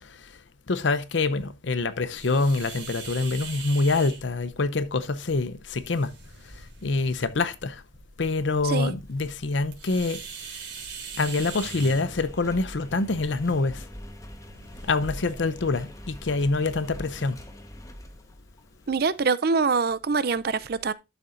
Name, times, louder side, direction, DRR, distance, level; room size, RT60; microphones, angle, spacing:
voice 1, 0.7-6.1 6.8-7.8 8.2-10.2 11.2-13.8 14.9-17.4, left 3 dB, 75° left, 0.7 m, -25 dB
sound 1, 2.1-16.3, right 5 dB, 70° right, 3.3 m, -43 dB
Engine, 8.4-19.3, equal, 15° left, 1.2 m, -45 dB
voice 2, 18.9-20.9, right 4 dB, 55° right, 0.5 m, -24 dB
12.0 x 6.8 x 2.6 m
head